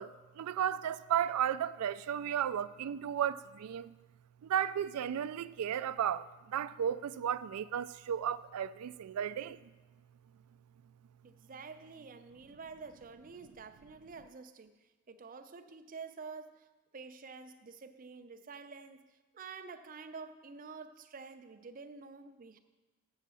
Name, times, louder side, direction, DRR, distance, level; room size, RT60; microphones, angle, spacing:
voice 1, 0.0-3.9 4.4-9.6, right 9 dB, 90° right, 0.3 m, -34 dB
voice 2, 11.2-14.8 15.1-16.7 16.9-22.6, right 4 dB, 40° right, 0.5 m, -48 dB
7.5 x 7.1 x 6.8 m
head